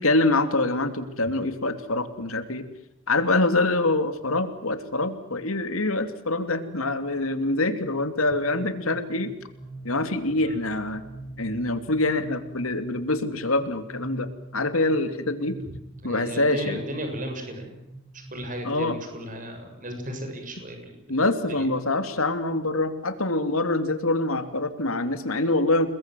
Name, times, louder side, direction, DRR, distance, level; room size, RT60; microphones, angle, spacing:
voice 1, 0.0-2.6 3.1-9.3 9.8-11.0 11.4-14.3 14.5-15.6 16.0-16.8 18.6-19.0 21.1-25.9, left 2 dB, 75° left, 9 dB, 3.0 m, -25 dB
sound 1, 8.3-18.4, right 2 dB, 5° right, 6.3 m, -44 dB
voice 2, 16.0-17.8 18.3-21.0, equal, 40° right, 4 dB, 6.9 m, -35 dB
29.5 x 21.5 x 7.8 m, 0.87 s
head